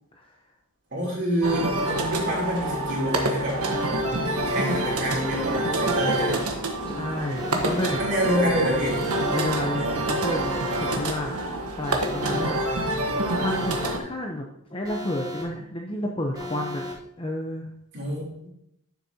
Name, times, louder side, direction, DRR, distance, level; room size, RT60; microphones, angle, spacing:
voice 1, 0.9-6.4 7.7-9.0 17.9-18.5, equal, 55° right, -5 dB, 3.2 m, -27 dB
sound 1, 1.4-14.0, right 2 dB, 85° right, 1.3 m, -27 dB
Alarm, 4.3-4.9 5.8-6.4 7.3-7.9 8.8-9.4 10.3-10.9 11.8-12.4 13.3-13.9 14.8-15.4 16.3-16.9, left 1 dB, 15° right, 2.5 m, -35 dB
voice 2, 6.9-8.0 9.3-11.3 11.8-12.6 12.9-16.8 17.2-17.7, left 1 dB, 25° left, 0 dB, 0.8 m, -31 dB
11.5 x 6.6 x 2.9 m, 0.76 s
head